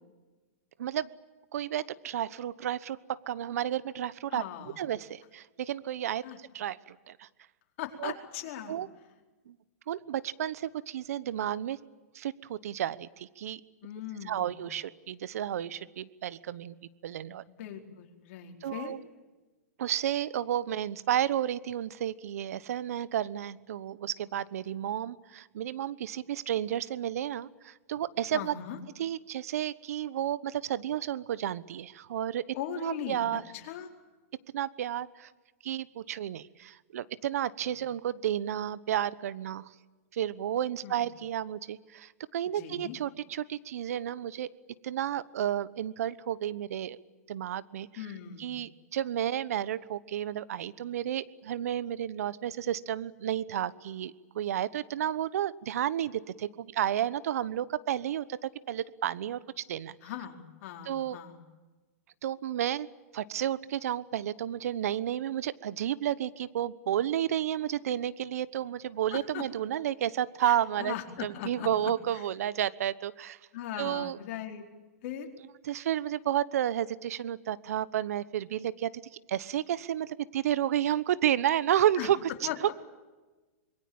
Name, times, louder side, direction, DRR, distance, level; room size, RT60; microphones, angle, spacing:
voice 1, 1.5-4.4 4.8-7.3 8.0-8.1 8.7-8.9 9.5-9.6 9.9-11.8 12.1-13.6 14.3-16.7 17.0-17.4 18.6-19.0 19.8-28.5 29.0-32.6 32.8-33.4 34.5-35.3 35.6-39.7 40.1-44.5 44.8-47.0 47.3-47.9 48.4-59.9 60.9-61.2 62.2-62.9 63.1-70.9 71.2-73.4 73.8-74.2 75.6-78.9 79.3-82.2, right 11 dB, 70° right, 18 dB, 1.1 m, -31 dB
voice 2, 4.3-4.8 6.2-6.4 7.8-8.7 13.8-14.6 17.5-18.9 28.3-28.8 32.5-33.3 33.5-33.9 37.6-37.7 40.8-41.0 42.5-43.0 48.0-48.6 60.0-61.4 69.1-69.4 70.4-71.7 72.1-72.2 73.5-74.6 75.0-75.3 82.0-82.1 82.4-82.7, left 10 dB, 55° left, 3 dB, 4.5 m, -39 dB
25.5 x 22.5 x 8.8 m, 1.2 s
hypercardioid pair, 125°, 8 cm